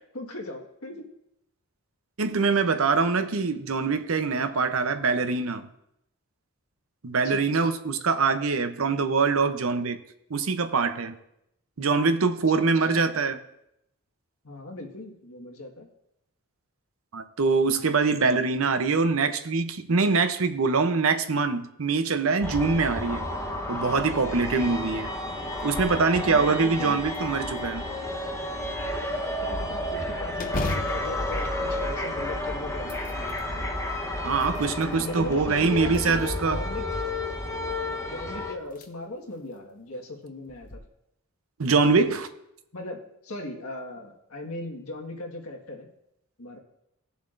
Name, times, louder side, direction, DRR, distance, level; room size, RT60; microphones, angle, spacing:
voice 1, 0.1-1.0 2.4-2.5 7.2-7.5 12.5-13.1 14.4-15.9 24.3-24.5 24.8-24.9 26.2-27.1 29.1-33.7 34.5-36.9 38.0-40.8 42.7-45.9 46.4-46.6, left 2 dB, 80° left, 1 dB, 1.7 m, -38 dB
voice 2, 2.2-5.7 7.0-10.0 10.3-11.2 11.8-13.4 17.1-23.3 23.7-25.1 25.6-27.8 34.2-36.6 41.6-42.3, right 4 dB, 70° right, 9 dB, 0.7 m, -24 dB
sound 1, 22.4-38.5, left 1 dB, 15° left, 1.0 m, -31 dB
sound 2, 25.5-26.1 26.5-26.6 27.1-28.0 30.4-32.4 32.8-33.5 34.1-35.0 35.9-36.6 38.0-38.1 38.6-38.9 39.3-39.4 40.5-40.8, left 2 dB, 40° left, 0.8 m, -36 dB
17.0 x 7.1 x 2.6 m, 0.81 s
head